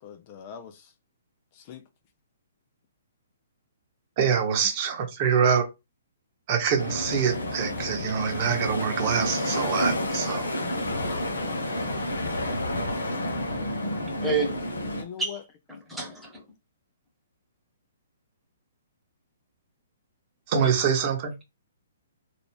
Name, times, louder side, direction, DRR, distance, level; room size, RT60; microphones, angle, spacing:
voice 1, 0.0-0.9 1.5-1.9 4.5-4.7 10.9-11.6 12.0-12.1 15.0-15.4, left 8 dB, 35° left, 0.4 m, -42 dB
voice 2, 4.2-5.7 6.5-10.5 20.5-21.4, right 7 dB, 35° right, 0.9 m, -25 dB
sound 1, 6.8-15.0, left 1 dB, 70° left, 0.8 m, -30 dB
voice 3, 14.2-14.7 15.2-15.4 15.7-16.4 20.5-20.7, right 3 dB, 5° right, 1.1 m, -30 dB
3.1 x 2.4 x 3.3 m
figure-of-eight pair, 125°, 0 cm